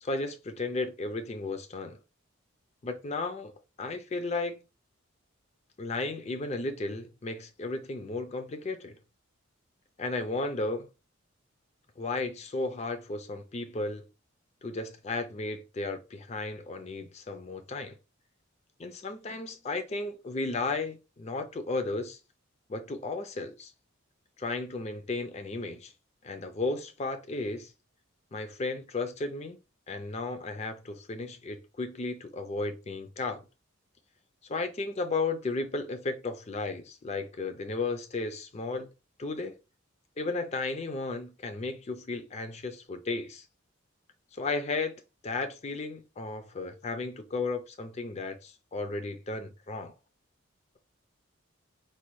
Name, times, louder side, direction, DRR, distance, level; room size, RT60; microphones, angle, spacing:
voice 1, 0.0-2.0 2.8-3.5 3.8-4.6 5.8-9.0 10.0-10.9 12.0-14.0 14.6-18.0 18.8-22.2 22.7-23.7 24.4-25.9 26.2-27.7 28.3-29.6 29.9-33.4 34.5-38.9 39.2-39.5 40.2-43.4 44.3-45.0 45.2-49.9, left 3 dB, 30° left, 0.4 m, -34 dB
4.2 x 2.2 x 3.0 m
head